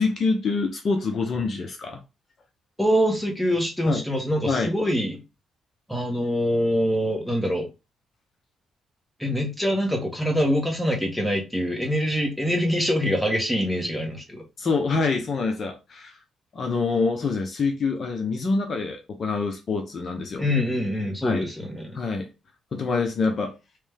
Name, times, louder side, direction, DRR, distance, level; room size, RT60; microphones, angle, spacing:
voice 1, 0.0-2.0 3.9-4.0 4.4-4.7 14.6-16.2 16.5-20.5 21.2-21.5 21.9-22.3 22.7-23.5, left 4 dB, 50° left, 0.8 m, -26 dB
voice 2, 2.8-5.2 5.9-7.7 9.2-14.4 20.4-22.0, equal, ahead, 1.5 m, -24 dB
3.3 x 3.2 x 3.4 m
cardioid pair, 90°, 0 cm